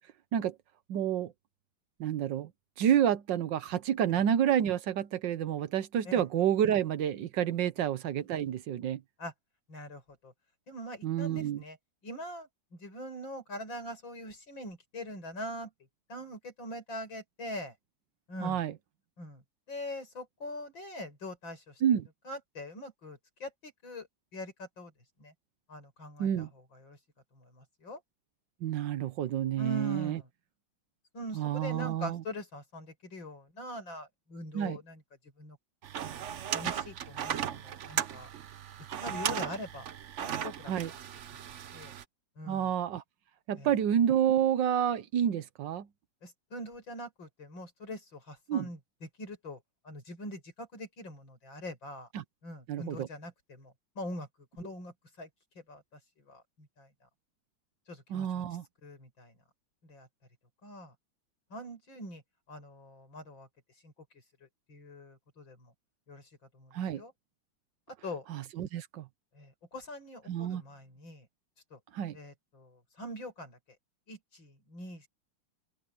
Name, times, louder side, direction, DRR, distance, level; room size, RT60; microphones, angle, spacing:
voice 1, 0.9-1.3 2.0-2.5 2.8-9.0 11.0-11.6 18.4-18.7 21.8-22.1 26.2-26.5 28.6-30.2 31.3-32.2 34.5-34.8 40.7-40.9 42.5-43.0 43.5-45.9 48.5-48.7 52.1-52.2 52.7-53.1 58.1-58.6 66.7-67.0 68.3-69.1 70.3-70.6 71.9-72.2, right 10 dB, 75° right, 1.6 m, -29 dB
voice 2, 9.7-10.3 10.7-11.8 12.0-12.5 12.8-15.7 16.1-17.7 18.3-18.6 19.2-19.4 19.7-21.7 22.3-24.1 24.3-24.9 25.2-25.3 25.7-26.5 26.9-27.0 27.4-28.0 29.6-30.3 31.1-35.0 35.4-35.6 36.0-38.3 39.0-39.9 40.2-40.7 41.7-41.9 42.4-42.7 43.6-43.7 46.2-48.8 49.2-49.6 49.8-52.1 52.4-54.3 54.6-55.3 55.7-55.8 56.3-56.9 57.9-58.4 58.8-59.3 59.9-60.1 60.6-60.9 61.5-62.2 62.5-63.5 63.8-63.9 64.7-65.7 66.1-66.2 66.5-67.1 67.9-68.3 69.4-71.3 71.7-71.8 72.1-73.6 74.1-75.1, left 1 dB, 90° left, 7.2 m, -43 dB
sound 1, 35.8-42.0, right 9 dB, 60° right, 0.8 m, -36 dB
open air
omnidirectional pair, 2.0 m